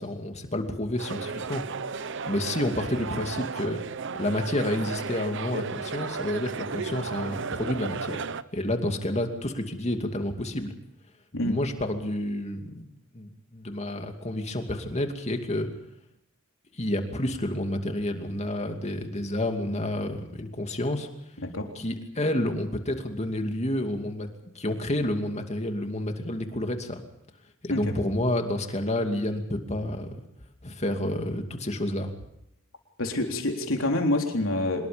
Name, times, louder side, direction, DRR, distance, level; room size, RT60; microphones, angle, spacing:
voice 1, 0.0-1.6 2.3-3.8 4.1-8.2 8.5-10.7 11.4-15.7 16.8-21.1 21.8-24.3 24.5-27.0 27.6-30.1 30.6-32.1, left 1 dB, 30° left, 5 dB, 2.5 m, -29 dB
sound 1, 1.0-8.4, right 5 dB, 60° right, 0.8 m, -34 dB
voice 2, 33.0-34.9, left 1 dB, 70° left, 3 dB, 3.9 m, -27 dB
25.5 x 21.5 x 5.2 m, 0.81 s
head